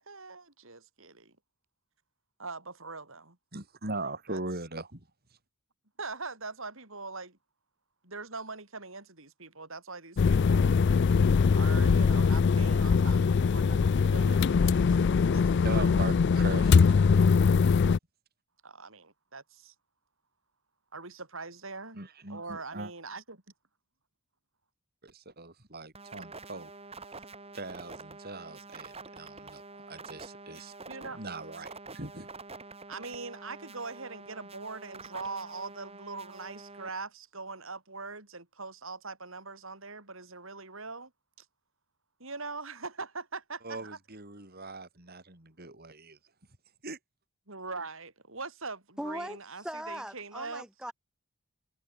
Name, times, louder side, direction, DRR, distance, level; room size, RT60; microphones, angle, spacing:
voice 1, 0.0-1.3 2.4-3.4 4.3-4.4 6.0-7.4 8.0-10.7 11.5-15.9 18.6-19.7 20.9-22.0 22.3-23.4 30.9-31.2 32.9-41.1 41.4-41.5 42.2-44.0 47.5-50.7, right 3 dB, 65° right, 4.8 m, -42 dB
voice 2, 3.5-5.1 15.6-17.6 21.9-22.9 25.0-26.7 27.5-30.7 31.1-32.3 43.6-46.2 46.8-47.0, right 2 dB, 45° right, 4.5 m, -40 dB
sound 1, 10.2-18.0, left 5 dB, 50° left, 0.4 m, -22 dB
sound 2, 25.9-36.9, right 3 dB, 25° right, 5.0 m, -47 dB
voice 3, 49.0-50.9, equal, 5° right, 3.5 m, -39 dB
head